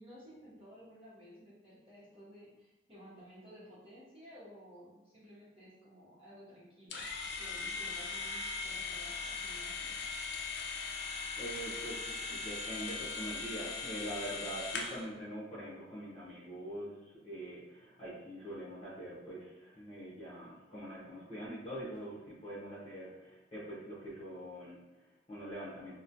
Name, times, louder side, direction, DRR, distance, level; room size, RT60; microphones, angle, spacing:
voice 1, 0.0-7.1 7.4-10.0, equal, 30° right, -9 dB, 1.0 m, -54 dB
sound 1, 6.9-15.1, left 4 dB, 70° left, 0.4 m, -39 dB
voice 2, 11.4-26.0, right 1 dB, 35° left, -8 dB, 0.9 m, -44 dB
3.0 x 2.1 x 2.6 m, 1.1 s
head